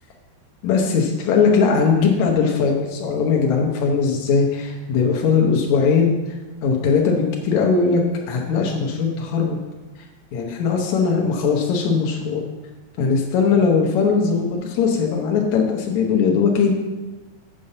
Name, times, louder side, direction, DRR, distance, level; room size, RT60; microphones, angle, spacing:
voice 1, 0.6-6.2 6.6-9.6 10.3-12.4 13.0-16.7, left 5 dB, 80° left, 0 dB, 1.6 m, -19 dB
8.4 x 5.6 x 6.5 m, 1.1 s
omnidirectional pair, 4.7 m